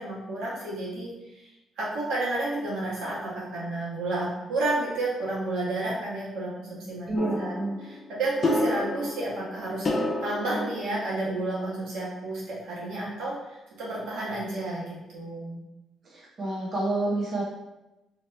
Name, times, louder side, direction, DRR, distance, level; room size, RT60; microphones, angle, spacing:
voice 1, 0.0-1.5 1.8-15.6, right 2 dB, 85° right, -7 dB, 1.4 m, -31 dB
voice 2, 7.1-7.8 16.0-17.4, right 2 dB, 50° right, -6 dB, 0.9 m, -29 dB
sound 1, 7.2-11.7, left 1 dB, 40° left, 0.6 m, -31 dB
2.9 x 2.8 x 3.2 m, 0.98 s
cardioid pair, 90°, 0 cm